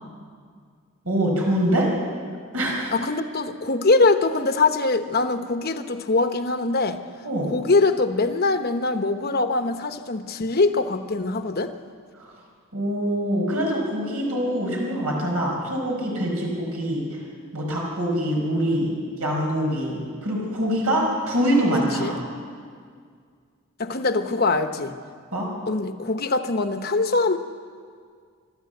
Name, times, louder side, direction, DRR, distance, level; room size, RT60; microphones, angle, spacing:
voice 1, 1.0-1.9 2.5-2.9 7.2-7.5 12.2-12.3 12.7-17.2 17.5-22.3 24.0-24.1 25.3-25.5, equal, 85° right, -2 dB, 4.8 m, -24 dB
voice 2, 2.9-7.0 7.5-11.7 22.0-22.2 23.8-24.9 25.7-27.4, left 3 dB, 45° left, 8 dB, 1.0 m, -22 dB
26.5 x 12.5 x 8.0 m, 2.1 s
head